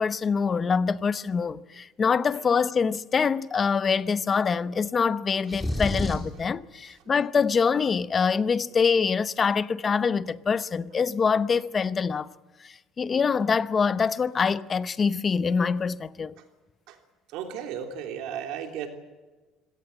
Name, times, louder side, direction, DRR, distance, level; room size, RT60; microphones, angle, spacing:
voice 1, 0.0-12.3 12.6-16.3, left 5 dB, 25° left, 0.7 m, -25 dB
sound 1, 5.5-6.4, left 1 dB, 5° left, 3.4 m, -29 dB
voice 2, 17.3-18.9, right 8 dB, 75° right, 3.2 m, -34 dB
25.5 x 17.5 x 7.8 m
cardioid pair, 150°, 0 cm